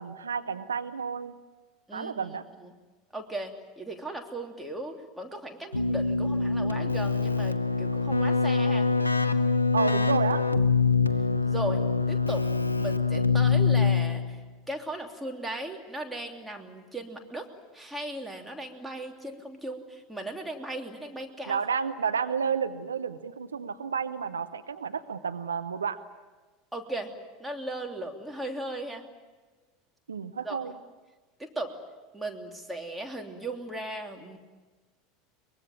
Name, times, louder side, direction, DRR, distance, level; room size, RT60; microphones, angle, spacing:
voice 1, 0.0-1.3 1.9-2.4 9.7-10.4 21.5-26.0 30.1-30.7, right 6 dB, 75° right, 10 dB, 0.8 m, -31 dB
voice 2, 1.9-2.7 3.1-8.9 11.4-11.8 12.1-12.5 12.8-14.4 14.7-17.5 17.7-21.6 26.7-27.1 27.4-29.0 30.4-30.6 31.4-31.7 32.1-34.4, right 1 dB, 5° right, 2 dB, 3.1 m, -37 dB
Keyboard (musical), 5.7-14.4, left 4 dB, 85° left, 0.8 m, -24 dB
23.5 x 21.5 x 9.2 m, 1.3 s
figure-of-eight pair, 75°, 0 cm